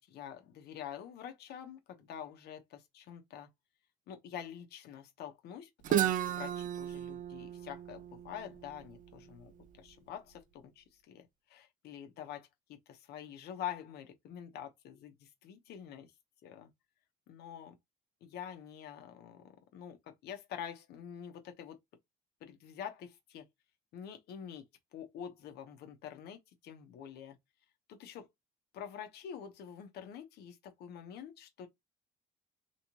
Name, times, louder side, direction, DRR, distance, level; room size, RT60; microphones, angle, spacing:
voice 1, 0.0-3.5 4.1-16.1 16.4-16.7 17.3-17.8 18.2-21.8 22.4-23.5 23.9-27.4 27.9-28.3 28.7-31.7, left 9 dB, 75° left, 0.9 m, -46 dB
Guitar, 5.8-9.6, right 11 dB, 50° right, 0.4 m, -34 dB
3.1 x 3.1 x 2.8 m
cardioid pair, 110°, 17 cm